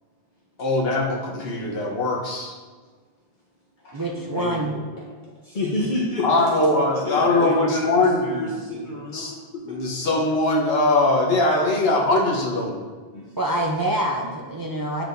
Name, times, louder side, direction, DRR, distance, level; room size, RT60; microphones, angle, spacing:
voice 1, 0.6-2.5 4.3-4.6 6.2-8.5 8.7-8.9 9.1-9.3 9.6-12.7, left 2 dB, 75° left, -2 dB, 1.2 m, -21 dB
voice 2, 3.9-4.8 13.4-15.0, right 1 dB, 30° right, -1 dB, 0.4 m, -26 dB
voice 3, 5.4-6.3 7.0-9.8 13.1-13.6, left 2 dB, 50° left, -4 dB, 1.0 m, -29 dB
8.4 x 4.6 x 2.6 m, 1.5 s
omnidirectional pair, 1.0 m